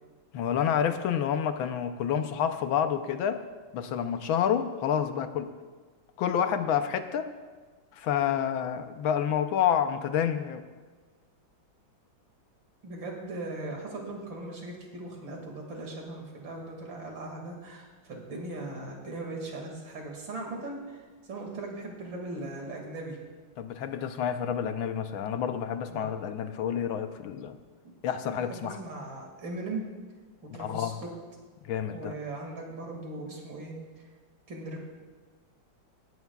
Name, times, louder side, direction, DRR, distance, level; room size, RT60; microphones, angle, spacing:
voice 1, 0.3-3.4 3.7-5.5 6.2-7.3 7.9-10.6 23.6-27.6 28.0-28.8 30.6-30.9 31.6-32.1, left 8 dB, 85° left, 9 dB, 1.6 m, -29 dB
voice 2, 12.8-23.2 25.9-26.1 27.8-27.9 28.4-29.9 30.5-31.1 31.9-33.8 34.5-34.8, right 2 dB, 70° right, 0 dB, 3.0 m, -39 dB
18.5 x 13.0 x 2.4 m, 1.4 s
omnidirectional pair, 2.1 m